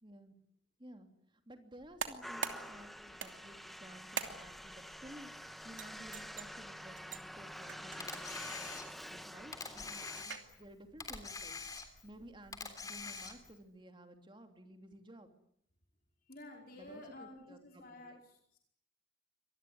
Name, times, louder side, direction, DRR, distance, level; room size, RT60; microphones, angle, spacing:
voice 1, 0.0-0.3 0.8-8.8 9.1-11.6 12.0-15.3 16.7-18.2, equal, 25° right, 6 dB, 3.0 m, -55 dB
sound 1, 1.8-13.5, right 6 dB, 70° right, 2.8 m, -48 dB
sound 2, 2.2-10.2, equal, ahead, 1.2 m, -48 dB
Camera, 8.0-9.1 9.5-10.7 11.0-12.1 12.5-13.6, left 4 dB, 20° left, 3.3 m, -45 dB
voice 2, 16.3-18.6, left 2 dB, 45° left, 2 dB, 4.9 m, -52 dB
25.5 x 20.5 x 9.5 m, 0.69 s
head